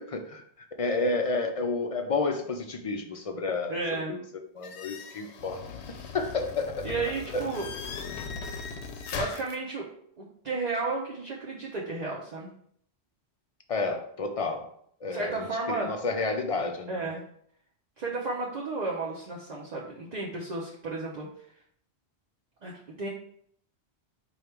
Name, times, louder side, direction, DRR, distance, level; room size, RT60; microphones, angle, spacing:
voice 1, 0.0-3.8 4.1-4.2 4.5-5.6 6.1-6.9 7.3-7.5 13.7-14.7 15.0-17.1, left 3 dB, 55° left, 5 dB, 0.4 m, -30 dB
voice 2, 3.7-4.2 6.8-7.7 9.2-9.9 10.2-12.5 15.1-15.9 16.9-17.2 18.0-21.3 22.6-23.1, right 3 dB, 45° right, -3 dB, 0.8 m, -33 dB
sound 1, 4.6-9.6, left 5 dB, 80° left, 0.9 m, -39 dB
5.0 x 2.3 x 4.4 m, 0.65 s
omnidirectional pair, 1.1 m